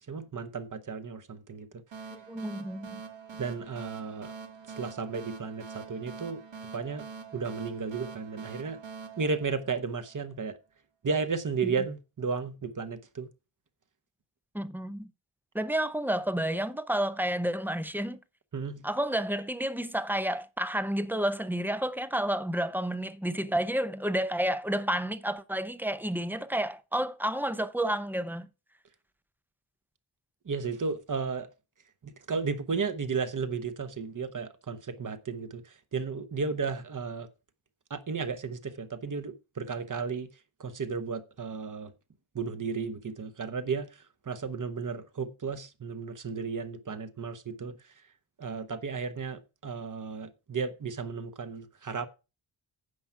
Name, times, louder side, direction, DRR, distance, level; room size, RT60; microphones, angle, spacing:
voice 1, 0.1-1.7 3.4-4.3 4.8-6.4 6.7-7.1 7.3-8.8 9.2-10.6 11.0-13.3 18.5-18.8 30.4-31.5 32.0-37.3 37.9-40.3 40.6-41.9 42.3-47.9 48.4-52.1, right 5 dB, 40° right, 1.0 m, -34 dB
sound 1, 1.9-10.2, right 5 dB, 65° right, 2.1 m, -45 dB
voice 2, 2.1-3.0 14.5-15.1 15.5-18.2 18.8-28.5, right 1 dB, 5° right, 0.6 m, -30 dB
9.7 x 5.9 x 5.7 m
wide cardioid pair, 135°, 49 cm